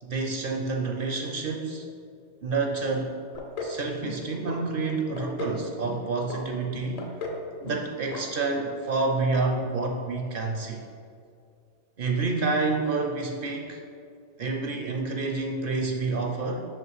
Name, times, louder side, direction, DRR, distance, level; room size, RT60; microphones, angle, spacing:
voice 1, 0.0-1.9 2.4-3.1 3.6-7.1 7.6-10.8 12.0-13.8 14.4-16.7, right 3 dB, 55° right, 2 dB, 0.7 m, -28 dB
sound 1, 3.3-3.8 4.0-4.6 4.9-5.6 5.8-6.4 6.7-7.4 7.7-8.2 8.6-8.7, left 3 dB, 40° left, 0.6 m, -35 dB
5.5 x 5.3 x 4.8 m, 2.3 s
omnidirectional pair, 1.3 m